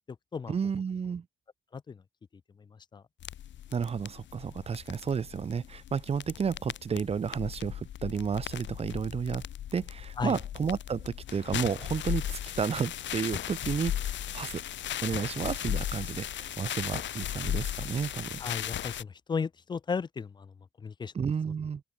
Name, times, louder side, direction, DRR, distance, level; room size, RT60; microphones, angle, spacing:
voice 1, 0.5-1.2 3.7-9.4 9.7-14.0 14.3-14.6 15.0-18.4 21.1-21.8, right 6 dB, 30° right, 0.6 m, -32 dB
sound 1, 3.2-19.0, left 11 dB, 65° left, 1.5 m, -37 dB
voice 2, 18.4-21.1, left 5 dB, 20° left, 0.3 m, -35 dB
open air
cardioid pair, 90°, 20 cm